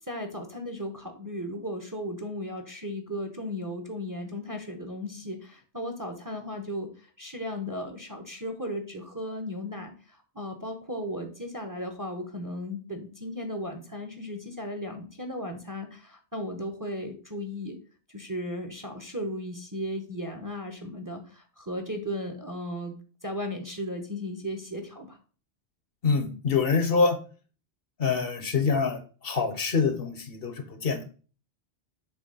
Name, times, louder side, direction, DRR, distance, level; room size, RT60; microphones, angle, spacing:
voice 1, 0.0-17.8 18.1-22.9 23.2-25.2, left 1 dB, 20° right, 5 dB, 0.8 m, -36 dB
voice 2, 26.0-27.2 28.0-31.0, left 5 dB, 60° left, 8 dB, 1.0 m, -25 dB
7.0 x 3.0 x 5.4 m, 0.38 s
omnidirectional pair, 1.1 m